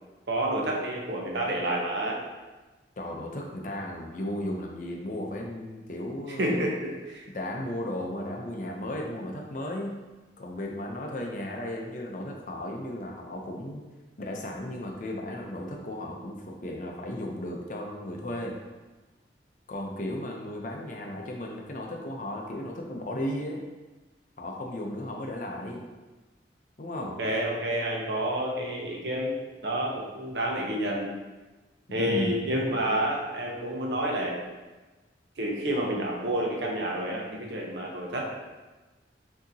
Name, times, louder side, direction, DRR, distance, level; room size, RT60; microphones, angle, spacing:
voice 1, 0.3-2.2 6.4-7.2 27.2-31.1 31.9-34.4 35.4-38.3, right 1 dB, 80° right, -1 dB, 0.9 m, -29 dB
voice 2, 3.0-6.7 7.3-10.0 10.4-13.8 14.2-18.6 19.7-23.6 24.4-25.8 26.8-27.2 32.0-32.4, left 1 dB, 45° left, 0 dB, 0.6 m, -35 dB
6.1 x 2.8 x 2.8 m, 1.2 s
head